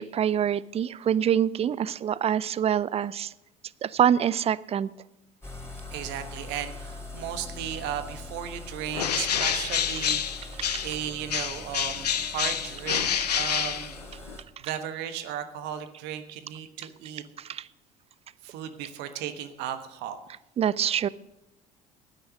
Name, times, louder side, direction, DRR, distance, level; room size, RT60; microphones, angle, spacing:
voice 1, 0.0-3.3 3.8-4.9 10.7-10.9 17.4-17.7 20.6-21.1, right 9 dB, 30° right, 19 dB, 0.5 m, -25 dB
sound 1, 5.4-14.4, left 2 dB, 15° left, 3.5 m, -42 dB
voice 2, 5.9-13.9 14.6-17.2 18.4-20.2, right 10 dB, 60° right, 9 dB, 1.4 m, -35 dB
Bird, 8.9-11.0 11.3-14.4, left 8 dB, 85° left, 0.6 m, -28 dB
13.0 x 9.6 x 6.4 m, 0.93 s
figure-of-eight pair, 60°, 20 cm